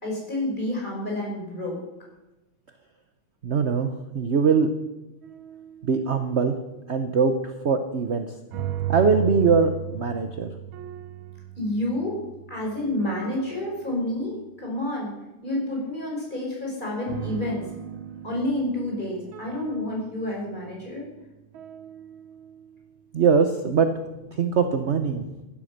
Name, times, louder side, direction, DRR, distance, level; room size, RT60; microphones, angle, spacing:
voice 1, 0.0-1.8 11.6-12.2 12.5-15.1 15.4-17.7 18.2-21.3, left 1 dB, 20° left, -2 dB, 5.6 m, -29 dB
voice 2, 3.4-4.7 5.8-6.6 6.9-8.3 8.9-10.5 23.1-23.9 24.3-25.4, right 5 dB, 50° right, 8 dB, 0.8 m, -22 dB
sound 1, 5.2-5.9 8.5-14.4 17.1-22.7, right 12 dB, 70° right, 1.6 m, -36 dB
15.5 x 12.0 x 6.6 m, 1.0 s
omnidirectional pair, 2.4 m